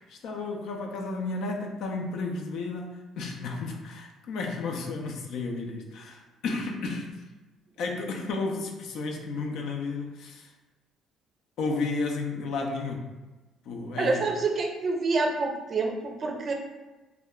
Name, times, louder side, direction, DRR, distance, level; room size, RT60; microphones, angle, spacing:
voice 1, 0.1-7.2 7.8-10.5 11.6-13.1 13.6-14.3, left 3 dB, 70° left, 2 dB, 0.4 m, -32 dB
voice 2, 14.0-16.5, right 3 dB, 45° right, 2 dB, 0.5 m, -27 dB
2.2 x 2.1 x 3.6 m, 1.1 s
supercardioid pair, 75°, 0 cm